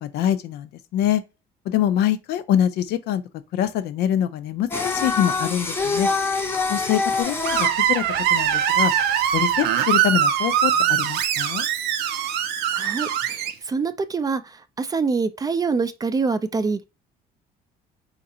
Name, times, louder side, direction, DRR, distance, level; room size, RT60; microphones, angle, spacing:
voice 1, 0.0-1.2 1.7-3.2 3.5-6.1 6.7-8.0 8.3-8.9 9.3-11.7, left 10 dB, 75° left, 0.5 m, -24 dB
Singing, 4.7-9.7, left 3 dB, 15° left, 0.6 m, -26 dB
Screech, 7.4-13.5, right 9 dB, 80° right, 0.5 m, -22 dB
voice 2, 12.7-14.4 14.8-16.8, right 4 dB, 20° right, 0.3 m, -25 dB
3.9 x 2.5 x 2.7 m
cardioid pair, 110°, 17 cm